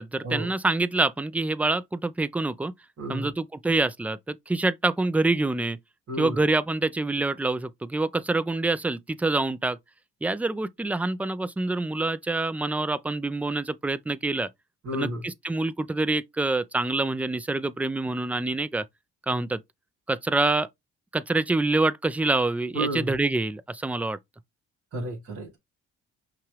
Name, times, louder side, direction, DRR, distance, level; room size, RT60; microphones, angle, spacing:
voice 1, 0.0-2.7 3.1-4.2 4.5-5.8 6.2-9.8 10.2-14.5 14.9-18.9 19.3-19.6 20.1-20.7 21.1-24.2, right 2 dB, 5° right, 0.3 m, -26 dB
voice 2, 3.0-3.3 6.1-6.4 14.8-15.2 22.7-23.1 24.9-25.6, right 1 dB, 50° right, 2.0 m, -31 dB
5.8 x 2.3 x 3.2 m
cardioid pair, 90°, 30 cm